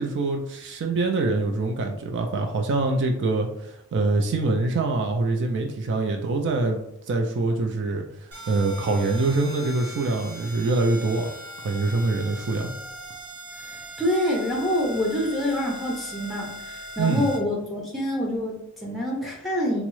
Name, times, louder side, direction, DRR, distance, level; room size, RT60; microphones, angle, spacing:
voice 1, 0.0-6.8 7.1-11.3 11.6-12.7 17.0-17.3, right 3 dB, 55° right, 3 dB, 0.3 m, -24 dB
sound 1, 8.3-17.4, equal, 80° right, 0.9 m, -40 dB
voice 2, 13.7-19.8, left 1 dB, ahead, -2 dB, 0.5 m, -26 dB
3.5 x 2.0 x 3.0 m, 0.81 s
head